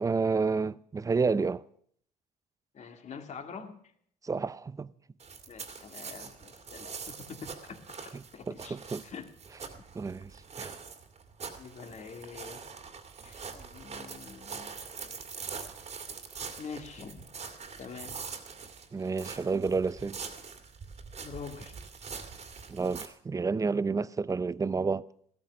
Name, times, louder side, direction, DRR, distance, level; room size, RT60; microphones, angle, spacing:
voice 1, 0.0-1.6 4.2-4.9 8.1-9.0 9.9-10.3 10.6-10.8 18.9-20.2 22.7-25.0, right 4 dB, 20° right, 0.5 m, -30 dB
voice 2, 2.7-3.8 5.5-8.8 9.0-9.3 11.6-12.6 13.2-14.7 16.6-17.3 17.8-18.2 21.2-21.8, left 5 dB, 45° left, 2.0 m, -45 dB
sound 1, 5.2-23.1, right 5 dB, 40° right, 2.2 m, -44 dB
15.0 x 13.0 x 6.2 m
cardioid pair, 110°, 17 cm